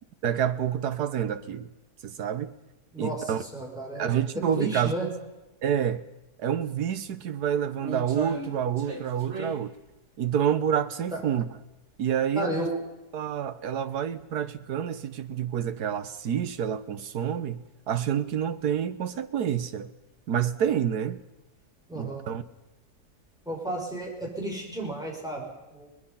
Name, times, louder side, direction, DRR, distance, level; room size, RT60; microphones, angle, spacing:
voice 1, 0.2-1.7 2.0-2.5 3.0-3.4 3.9-4.9 5.6-6.0 6.4-9.7 10.2-11.4 12.0-12.7 13.1-19.9 20.3-21.2 22.0-22.4, right 9 dB, 80° right, 1.6 m, -28 dB
voice 2, 2.9-5.1 11.1-11.2 12.4-12.8 21.9-22.3 23.4-25.9, right 1 dB, ahead, 6.1 m, -33 dB
sound 1, 7.3-12.1 12.5-12.6 13.3-13.4 13.7-13.8 14.8-14.9 15.2-15.4 15.9-16.0 16.3-16.4 18.6-18.7 19.9-20.3 20.6-21.1 21.4-21.6 21.9-22.0 23.1-23.3 23.9-24.6 24.9-25.0, right 3 dB, 45° right, 2.2 m, -39 dB
23.5 x 20.0 x 5.7 m
omnidirectional pair, 1.7 m